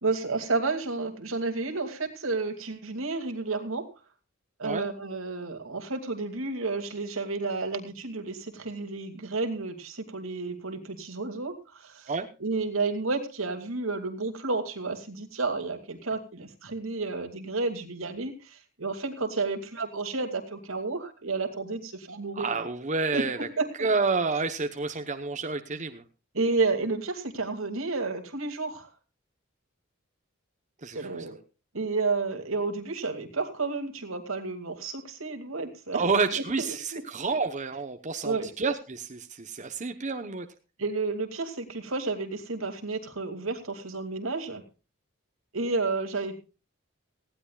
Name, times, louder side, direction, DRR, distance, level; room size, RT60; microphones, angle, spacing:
voice 1, 0.0-3.9 4.6-12.1 12.4-22.5 23.1-23.9 26.3-28.9 30.9-31.4 31.7-36.0 36.3-37.0 38.2-38.5 40.8-44.6 45.5-46.4, right 3 dB, 85° right, 5 dB, 2.6 m, -31 dB
voice 2, 22.4-23.5 23.8-26.0 30.8-31.0 35.9-40.5, right 4 dB, 35° right, 7 dB, 1.0 m, -29 dB
18.5 x 15.5 x 2.4 m, 0.31 s
head